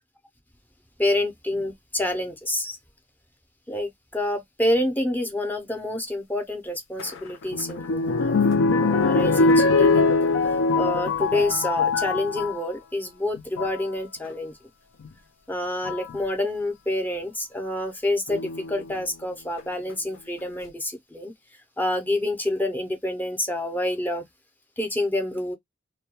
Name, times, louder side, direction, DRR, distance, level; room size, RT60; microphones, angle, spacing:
voice 1, 1.0-2.8 3.7-8.4 8.8-14.5 15.5-18.4 18.7-21.3 21.8-24.2 24.8-25.5, left 1 dB, 10° left, 0.5 m, -28 dB
sound 1, 7.0-12.6 13.4-13.8 15.0-15.1 15.8-16.2 18.3-18.9 19.6-19.7 19.9-20.0, left 3 dB, 90° left, 0.4 m, -22 dB
2.2 x 2.1 x 2.8 m
head